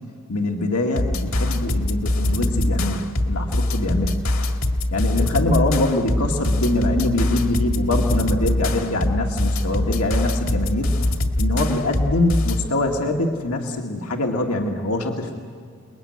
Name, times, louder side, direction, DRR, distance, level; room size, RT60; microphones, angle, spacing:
voice 1, 0.3-4.2 4.9-10.9 11.4-15.2, left 2 dB, 90° left, 2 dB, 1.9 m, -23 dB
sound 1, 1.0-12.7, left 1 dB, 65° left, 2.1 m, -23 dB
29.0 x 21.5 x 9.6 m, 2.2 s
head